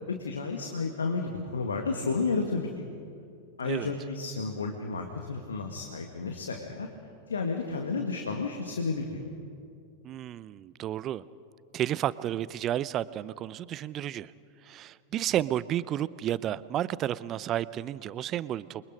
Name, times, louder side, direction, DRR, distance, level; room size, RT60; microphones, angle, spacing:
voice 1, 0.1-2.8 3.6-6.9 7.3-9.2, left 4 dB, 70° left, 4 dB, 1.7 m, -32 dB
voice 2, 10.0-11.3 11.7-14.3 14.6-18.8, right 12 dB, 30° right, 19 dB, 0.6 m, -32 dB
28.5 x 23.5 x 5.2 m, 2.5 s
figure-of-eight pair, 90°, 0 cm